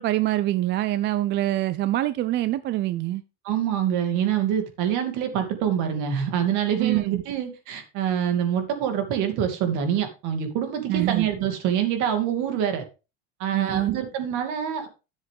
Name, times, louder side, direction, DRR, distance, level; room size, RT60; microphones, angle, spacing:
voice 1, 0.0-3.2 6.8-7.2 10.9-11.3 13.5-14.0, right 15 dB, 35° right, 0.4 m, -25 dB
voice 2, 3.4-12.8 13.4-14.9, right 9 dB, 60° right, 2.6 m, -25 dB
11.0 x 7.3 x 3.5 m
cardioid pair, 150°, 33 cm